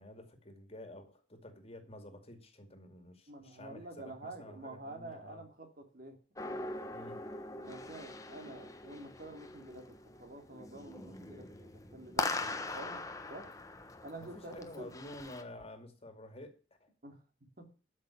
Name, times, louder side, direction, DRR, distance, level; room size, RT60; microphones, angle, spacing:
voice 1, 0.0-5.4 6.9-7.2 14.2-16.5 16.8-16.9, left 1 dB, 35° left, 7 dB, 2.4 m, -50 dB
voice 2, 3.3-7.1 7.6-13.5 14.0-14.9 17.0-17.2 17.6-17.7, right 2 dB, 50° right, 4 dB, 3.0 m, -49 dB
sound 1, 6.4-15.4, left 2 dB, 20° left, 1.2 m, -42 dB
13.0 x 6.5 x 8.5 m, 0.35 s
head